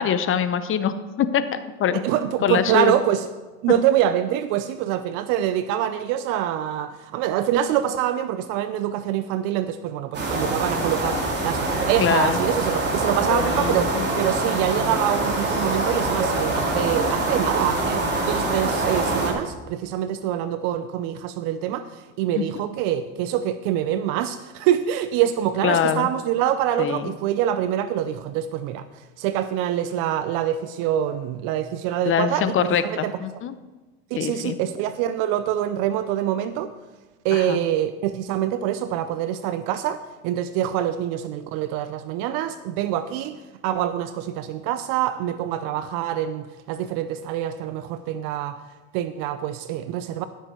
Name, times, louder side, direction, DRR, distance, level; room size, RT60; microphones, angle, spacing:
voice 1, 0.0-2.0 2.4-2.9 12.0-12.4 13.3-14.0 22.3-22.4 25.6-26.1 26.8-27.1 31.9-33.6 34.2-34.6 37.3-37.6, left 8 dB, 35° left, 12 dB, 0.7 m, -24 dB
voice 2, 1.9-3.3 3.6-33.1 34.1-36.7 37.2-48.6 48.9-50.2, right 11 dB, 65° right, 12 dB, 0.6 m, -25 dB
sound 1, 10.1-19.3, right 2 dB, 30° right, 3.2 m, -24 dB
15.5 x 6.5 x 4.5 m, 1.2 s
supercardioid pair, 115°, 36 cm